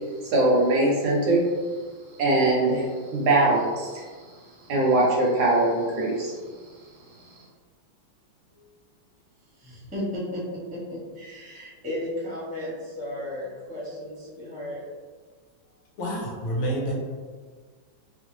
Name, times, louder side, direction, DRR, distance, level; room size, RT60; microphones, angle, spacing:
voice 1, 0.2-1.4 2.2-4.3 4.7-6.3 7.2-7.3, right 2 dB, 70° right, -3 dB, 0.9 m, -22 dB
voice 2, 9.6-14.8, left 1 dB, 10° right, -8 dB, 0.3 m, -34 dB
voice 3, 16.0-16.9, equal, 70° left, -3 dB, 1.5 m, -28 dB
3.5 x 2.2 x 3.0 m, 1.5 s
omnidirectional pair, 2.3 m